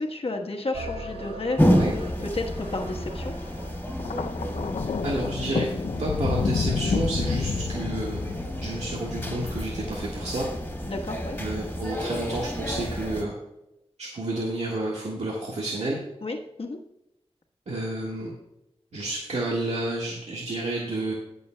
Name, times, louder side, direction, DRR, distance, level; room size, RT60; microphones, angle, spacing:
voice 1, 0.0-3.3 10.9-11.4 16.2-16.8, left 2 dB, 60° left, 2 dB, 1.2 m, -32 dB
sound 1, 0.7-5.1, equal, 65° right, 2.6 m, -40 dB
sound 2, 1.6-13.2, equal, 15° left, 2.3 m, -30 dB
Thunder, 4.0-10.3 11.3-11.6, left 5 dB, 80° left, 0.5 m, -30 dB
voice 2, 5.0-5.7 6.0-8.2 8.6-10.5 11.4-13.4 14.0-16.0 17.7-18.3 18.9-21.1, right 2 dB, 90° right, -4 dB, 1.6 m, -30 dB
20.5 x 6.9 x 2.2 m, 0.90 s
wide cardioid pair, 80°, 11 cm